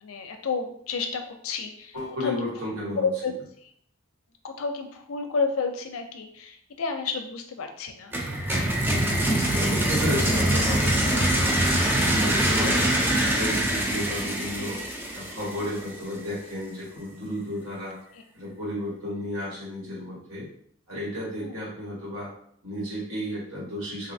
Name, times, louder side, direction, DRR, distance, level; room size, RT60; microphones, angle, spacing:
voice 1, 0.0-2.0 2.2-2.5 3.0-3.7 4.4-8.1 12.6-12.8 15.6-15.8 18.1-18.2 21.4-21.6, left 4 dB, 80° left, 5 dB, 0.5 m, -31 dB
voice 2, 1.9-3.1 8.7-11.6 12.0-12.8 13.2-14.8 15.1-18.0 18.3-20.5 20.9-22.3 22.6-24.1, left 1 dB, 75° right, -6 dB, 1.4 m, -33 dB
sound 1, 8.1-15.9, right 1 dB, 10° right, 0.3 m, -24 dB
3.2 x 2.4 x 2.6 m, 0.64 s
head